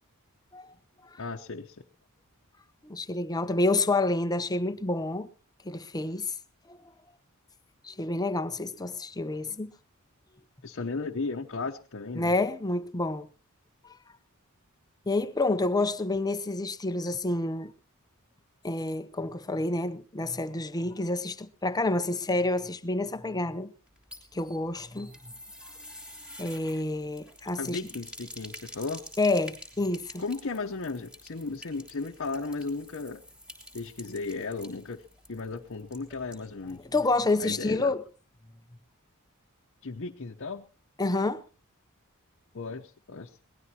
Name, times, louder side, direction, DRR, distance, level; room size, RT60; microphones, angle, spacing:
voice 1, 1.2-1.8 10.6-12.3 27.6-29.0 30.2-33.2 33.7-35.0 35.3-36.8 37.4-37.9 39.8-40.6 42.5-43.4, left 3 dB, 60° left, 0.9 m, -35 dB
voice 2, 2.8-5.3 5.6-6.3 6.7-6.8 7.8-9.7 12.2-13.3 15.1-17.7 18.6-23.7 24.3-25.1 26.4-27.8 29.2-30.2 36.7-38.0 41.0-41.4, left 2 dB, 20° left, 0.7 m, -28 dB
sound 1, 23.9-36.8 37.1-37.2 37.5-37.6, left 1 dB, 5° right, 3.2 m, -48 dB
22.5 x 18.5 x 2.9 m
head